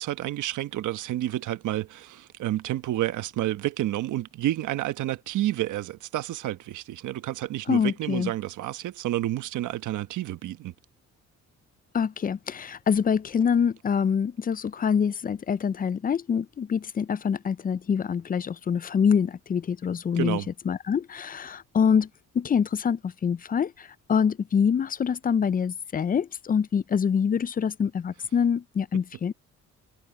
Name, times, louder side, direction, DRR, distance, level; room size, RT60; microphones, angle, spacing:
voice 1, 0.0-10.7 20.2-20.5, right 14 dB, 80° right, 1.2 m, -30 dB
voice 2, 7.7-8.3 11.9-20.4 20.7-22.1 22.3-29.3, left 7 dB, 30° left, 0.5 m, -25 dB
cardioid pair, 90°, 30 cm